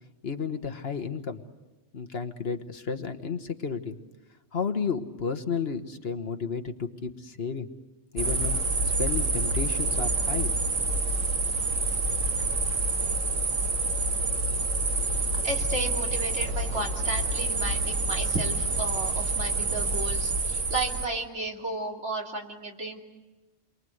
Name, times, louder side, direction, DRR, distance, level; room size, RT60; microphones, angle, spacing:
voice 1, 0.2-1.4 1.9-4.0 4.5-7.7 8.1-8.6 8.9-10.5, left 5 dB, 55° left, 5 dB, 1.5 m, -32 dB
sound 1, 8.2-21.1, right 2 dB, 80° right, 1.9 m, -27 dB
voice 2, 15.4-23.0, right 2 dB, 65° right, 0 dB, 3.3 m, -33 dB
29.5 x 23.5 x 7.9 m, 1.1 s
omnidirectional pair, 1.3 m